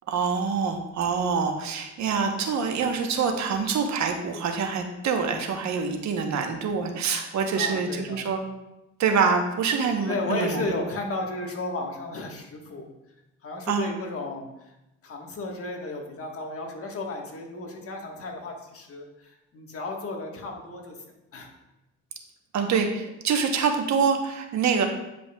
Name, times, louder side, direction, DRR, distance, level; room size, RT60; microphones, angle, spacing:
voice 1, 0.1-8.4 9.0-10.7 13.7-13.9 22.5-24.9, right 5 dB, 65° right, 4 dB, 1.0 m, -25 dB
voice 2, 7.5-8.2 10.0-12.9 13.4-14.5 15.0-21.0 21.3-21.5, left 2 dB, 50° left, 1 dB, 1.4 m, -33 dB
9.2 x 5.2 x 2.3 m, 0.94 s
cardioid pair, 90°, 30 cm